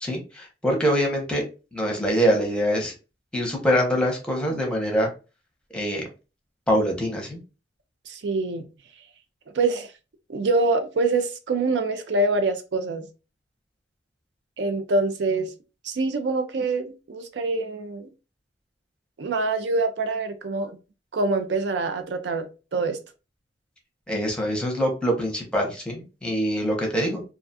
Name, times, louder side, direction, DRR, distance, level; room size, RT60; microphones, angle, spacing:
voice 1, 0.0-1.4 1.7-2.9 3.3-5.1 5.7-6.0 6.7-7.4 24.1-27.2, equal, 5° left, 0.7 m, -24 dB
voice 2, 8.1-8.7 9.5-9.9 10.3-13.1 14.6-15.5 15.8-18.1 19.2-20.7 21.1-23.0, right 3 dB, 75° right, 0.5 m, -25 dB
2.4 x 2.3 x 2.6 m
head